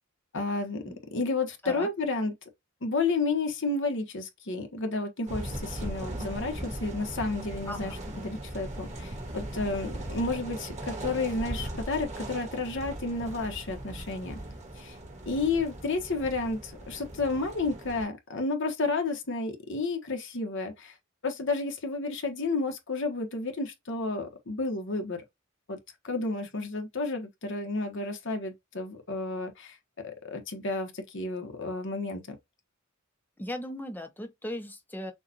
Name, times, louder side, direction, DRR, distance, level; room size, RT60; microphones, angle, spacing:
voice 1, 0.3-0.8 1.1-2.3 2.8-14.4 14.8-15.0 15.3-20.9 21.2-25.2 25.7-25.8 26.0-29.8 30.2-32.4, left 3 dB, 60° left, 1.1 m, -31 dB
sound 1, 5.3-18.1, right 1 dB, 35° right, 1.6 m, -39 dB
voice 2, 33.4-35.1, left 1 dB, 10° left, 0.7 m, -37 dB
6.4 x 2.4 x 2.9 m
head